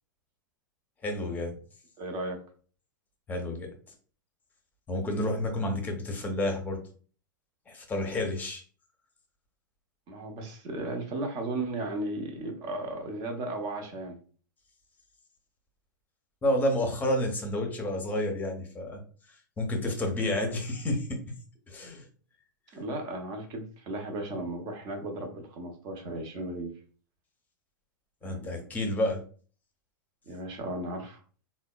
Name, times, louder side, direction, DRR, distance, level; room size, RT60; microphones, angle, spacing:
voice 1, 1.0-1.6 3.3-3.7 4.9-6.8 7.7-8.6 16.4-19.0 19.6-21.2 21.7-22.0 28.2-29.2, left 1 dB, 15° left, 3 dB, 0.7 m, -30 dB
voice 2, 2.0-2.4 10.1-14.2 22.7-26.7 28.2-28.6 30.3-31.2, right 2 dB, 40° right, 4 dB, 0.7 m, -35 dB
3.5 x 2.2 x 2.2 m, 0.41 s
figure-of-eight pair, 95°, 11 cm